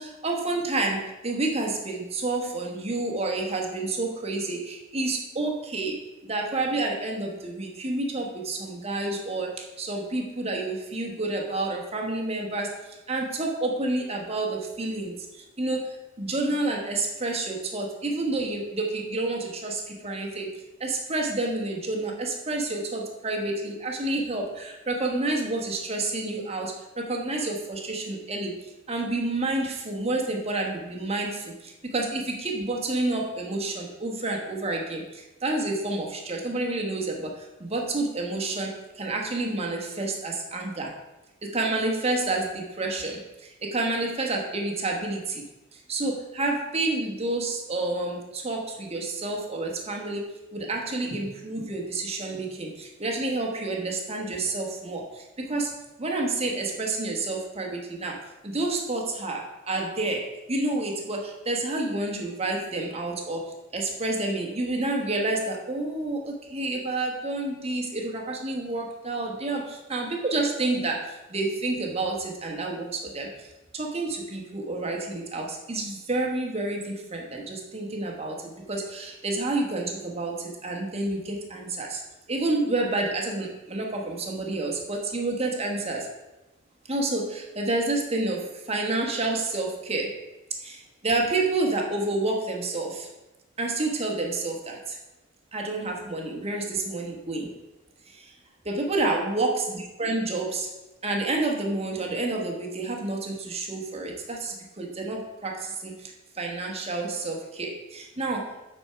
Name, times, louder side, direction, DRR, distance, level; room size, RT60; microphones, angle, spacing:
voice 1, 0.0-20.5 20.8-28.6 28.9-41.0 41.4-45.4 45.7-82.0 82.3-86.1 86.9-90.2 90.6-93.1 93.6-95.0 95.5-97.5 98.1-98.3 98.6-100.7 101.0-108.5, right 2 dB, 30° right, 1 dB, 1.1 m, -29 dB
7.9 x 4.4 x 5.6 m, 1.0 s
head